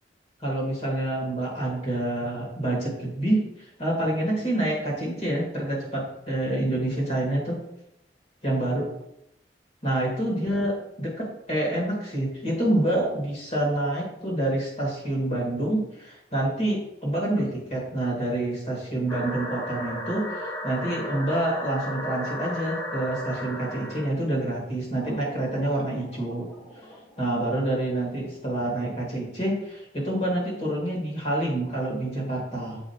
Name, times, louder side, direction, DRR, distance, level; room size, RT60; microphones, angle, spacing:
voice 1, 0.4-3.4 3.8-7.6 8.4-8.9 9.8-26.5 27.2-32.8, right 1 dB, 40° left, -3 dB, 2.1 m, -27 dB
sound 1, 19.1-24.1 25.0-27.4, equal, 20° left, 1.0 m, -35 dB
7.3 x 4.5 x 2.9 m, 0.83 s
head